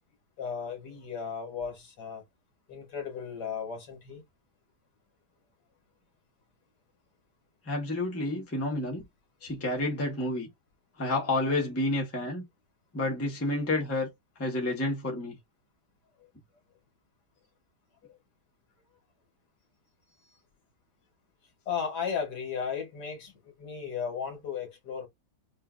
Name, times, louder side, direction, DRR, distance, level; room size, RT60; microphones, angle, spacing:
voice 1, 0.4-2.2 2.7-4.2 21.7-23.3 23.6-25.1, left 6 dB, 60° left, 1.8 m, -35 dB
voice 2, 7.7-9.0 9.4-10.5 11.0-12.4 12.9-14.1 14.4-15.3, left 2 dB, 10° left, 0.8 m, -29 dB
5.4 x 2.6 x 2.4 m
omnidirectional pair, 2.0 m